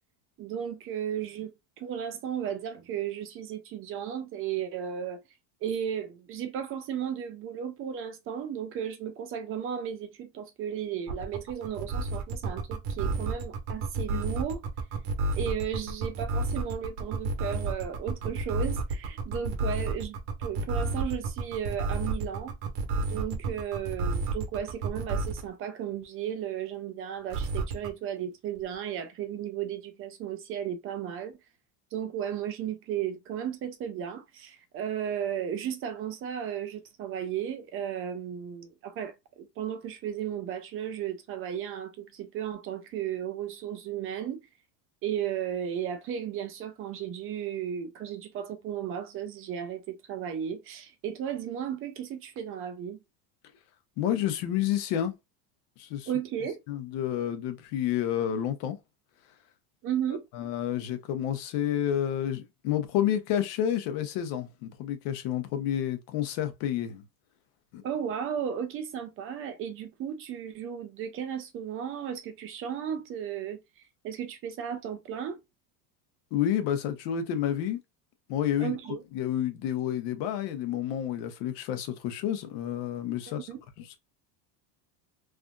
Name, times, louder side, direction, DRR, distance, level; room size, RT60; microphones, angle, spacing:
voice 1, 0.4-5.2 5.6-14.6 15.4-22.5 23.0-31.4 31.9-44.4 45.0-53.0 56.1-56.6 59.8-60.2 67.8-73.6 74.0-75.4 78.6-79.0 83.5-83.6, right 9 dB, 30° right, 0.4 m, -34 dB
sound 1, 11.1-25.5 27.3-27.9, right 3 dB, 50° right, 0.9 m, -30 dB
voice 2, 54.0-55.2 55.8-56.1 56.7-58.8 60.3-67.0 67.7-67.8 76.3-77.8 78.3-78.7 79.1-83.5, left 10 dB, 60° left, 0.9 m, -29 dB
3.4 x 2.5 x 2.3 m
supercardioid pair, 140°, 50 cm